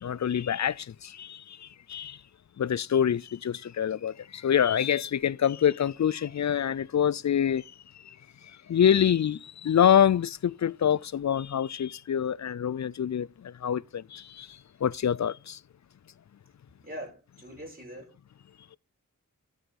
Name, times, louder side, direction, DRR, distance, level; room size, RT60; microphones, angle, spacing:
voice 1, 0.0-2.2 2.6-7.6 8.7-14.5 14.8-15.6, left 9 dB, 55° left, 0.4 m, -26 dB
voice 2, 16.8-18.1, equal, 25° right, 6.1 m, -42 dB
13.5 x 8.0 x 4.1 m
cardioid pair, 45°, 33 cm